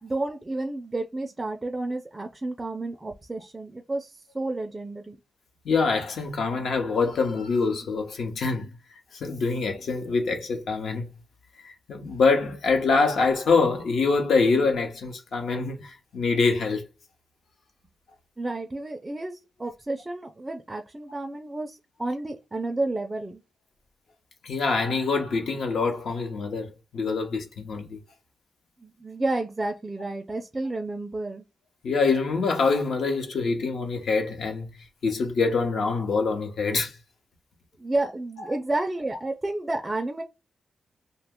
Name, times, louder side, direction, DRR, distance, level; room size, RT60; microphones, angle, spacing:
voice 1, 0.0-5.2 18.4-23.4 28.8-31.4 37.8-40.2, right 2 dB, 15° right, 0.4 m, -31 dB
voice 2, 5.6-8.7 9.1-11.1 11.6-16.8 24.4-28.0 31.8-34.7 35.0-37.0, left 4 dB, 70° left, 0.8 m, -25 dB
2.7 x 2.1 x 3.5 m
wide cardioid pair, 140°, 0 cm